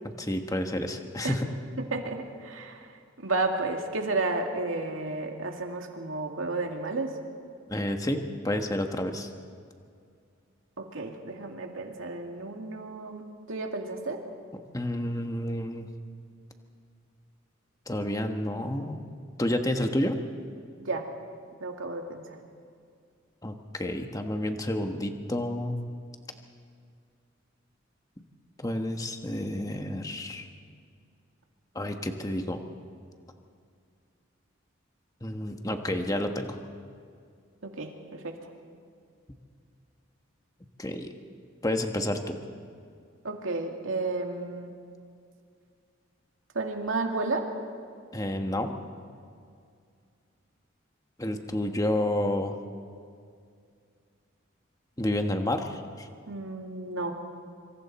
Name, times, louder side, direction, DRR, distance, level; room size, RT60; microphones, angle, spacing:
voice 1, 0.0-1.5 7.7-9.3 14.7-15.9 17.9-19.0 19.4-20.2 23.4-25.8 28.6-30.5 31.7-32.6 35.2-36.6 40.8-41.1 41.6-42.4 48.1-48.7 51.2-52.6 55.0-56.1, left 1 dB, 20° left, 5 dB, 1.3 m, -30 dB
voice 2, 1.8-2.9 3.2-7.2 10.8-14.2 20.8-21.1 21.6-22.4 37.6-38.4 43.2-44.7 46.5-47.5 56.3-57.1, right 3 dB, 85° right, 2 dB, 2.4 m, -32 dB
26.0 x 25.5 x 4.3 m, 2.3 s
head